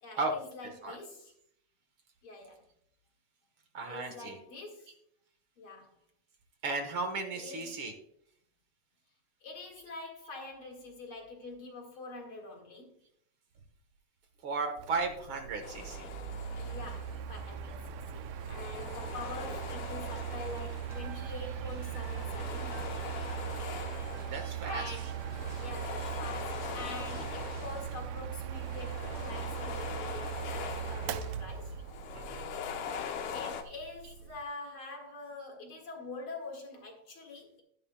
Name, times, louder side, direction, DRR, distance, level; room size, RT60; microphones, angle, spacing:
voice 1, 0.0-1.3 2.2-2.6 3.8-4.9 5.6-6.0 7.4-7.8 9.4-13.0 16.5-22.8 24.6-25.1 25.6-31.7 33.3-37.6, left 3 dB, 50° left, 2.4 m, -45 dB
voice 2, 0.6-1.0 3.7-4.4 6.6-7.9 14.4-16.1 24.3-25.0 27.1-27.2 32.1-32.5, right 3 dB, 55° right, 1.7 m, -35 dB
Mechanical fan, 14.8-34.4, right 10 dB, 85° right, 1.4 m, -40 dB
sound 1, 15.6-17.5 18.3-21.2 21.8-24.6 25.0-28.1 28.5-31.5 31.8-33.6, left 7 dB, 85° left, 2.4 m, -42 dB
sound 2, 20.9-31.8, left 1 dB, 30° right, 2.4 m, -48 dB
12.5 x 11.0 x 2.2 m
omnidirectional pair, 3.4 m